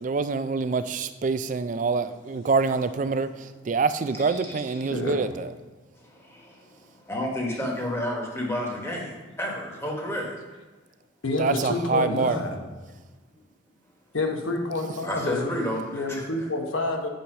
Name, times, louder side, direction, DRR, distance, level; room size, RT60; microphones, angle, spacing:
voice 1, 0.0-5.5 11.4-12.4, right 4 dB, 40° right, 12 dB, 0.3 m, -26 dB
voice 2, 4.2-4.6 5.9-10.4 13.3-13.4 15.0-16.2, left 1 dB, 15° left, -1 dB, 1.3 m, -31 dB
voice 3, 4.9-5.3 11.2-12.6 14.1-15.5 15.9-17.1, left 2 dB, 85° left, 2 dB, 1.1 m, -28 dB
7.9 x 4.2 x 5.3 m, 1.3 s
head